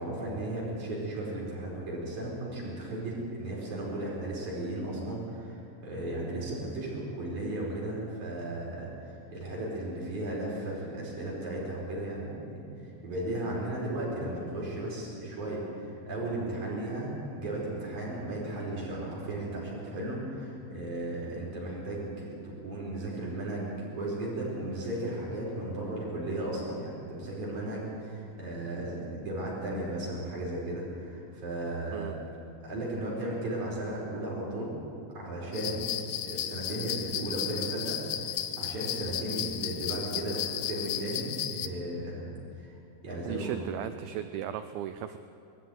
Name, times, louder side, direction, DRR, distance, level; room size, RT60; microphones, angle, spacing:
voice 1, 0.0-8.9 9.3-12.6 13.0-32.2 32.6-34.7 35.1-42.3 42.6-42.7 43.0-43.6, right 1 dB, 45° right, -5 dB, 6.0 m, -35 dB
sound 1, 35.5-41.7, left 11 dB, 90° left, 3.0 m, -34 dB
voice 2, 43.3-45.2, right 11 dB, 90° right, 10 dB, 2.1 m, -36 dB
21.5 x 13.5 x 9.3 m, 2.7 s
omnidirectional pair, 4.9 m